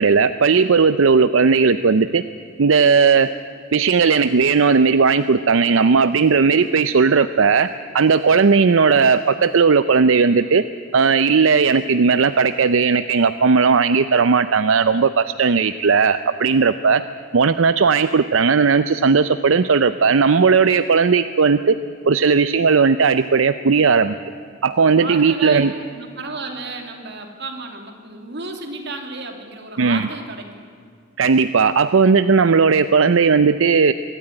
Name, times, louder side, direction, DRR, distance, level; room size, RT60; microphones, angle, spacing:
voice 1, 0.0-2.2 2.6-3.3 3.7-7.7 7.9-10.6 10.9-17.0 17.3-21.8 22.1-24.1 24.6-25.7 29.8-30.1 31.2-33.9, right 5 dB, 85° right, 12 dB, 0.6 m, -16 dB
voice 2, 25.0-30.7, right 3 dB, 60° right, 4 dB, 2.9 m, -33 dB
24.0 x 13.0 x 9.9 m, 2.3 s
head